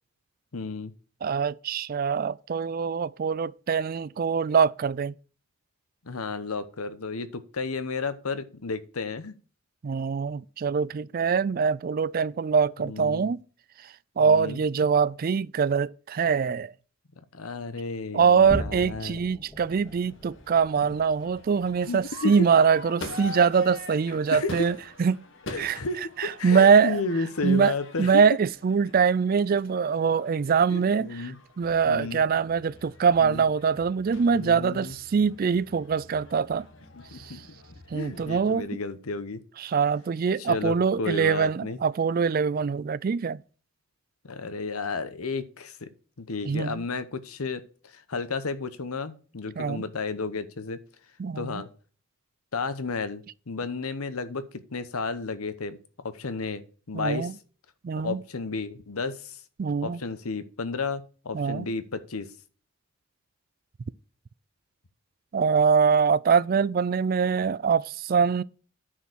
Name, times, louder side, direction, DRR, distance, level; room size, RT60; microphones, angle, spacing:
voice 1, 0.5-0.9 6.0-9.4 12.8-13.3 14.2-14.6 17.3-19.2 21.9-22.5 24.3-24.7 25.5-28.2 30.7-31.3 31.8-32.2 33.2-33.5 34.3-34.9 36.9-37.4 37.9-39.4 40.4-41.8 44.2-45.9 46.2-50.8 51.4-51.7 52.5-55.8 56.0-57.3 58.0-59.4 59.8-62.3, left 4 dB, 90° left, 1.0 m, -32 dB
voice 2, 1.2-5.1 9.8-13.4 14.2-16.7 18.1-25.2 25.6-25.8 26.2-27.0 27.4-31.3 31.6-36.7 37.2-37.4 37.9-38.7 39.6-43.4 46.4-46.8 49.6-49.8 51.2-51.6 56.9-57.3 57.8-58.2 59.6-60.0 61.3-61.7 65.3-68.4, right 6 dB, 40° right, 0.3 m, -23 dB
sound 1, 18.4-25.1 25.4-25.7 26.1-26.3 26.8-27.0, equal, 10° left, 2.0 m, -42 dB
Crowd / Fireworks, 19.6-38.6, left 2 dB, 60° left, 1.3 m, -45 dB
10.0 x 4.6 x 6.2 m
head